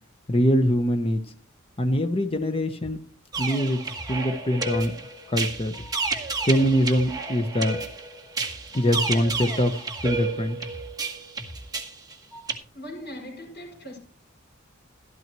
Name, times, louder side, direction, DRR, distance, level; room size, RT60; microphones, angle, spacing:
voice 1, 0.3-1.2 1.8-3.0 3.4-3.8 4.1-4.9 5.3-5.7 6.4-7.8 8.7-10.6, equal, 25° left, 0.8 m, -23 dB
sound 1, 3.3-12.6, right 3 dB, 20° right, 1.2 m, -31 dB
voice 2, 12.7-14.0, equal, 50° left, 5.7 m, -39 dB
12.5 x 12.5 x 3.0 m
head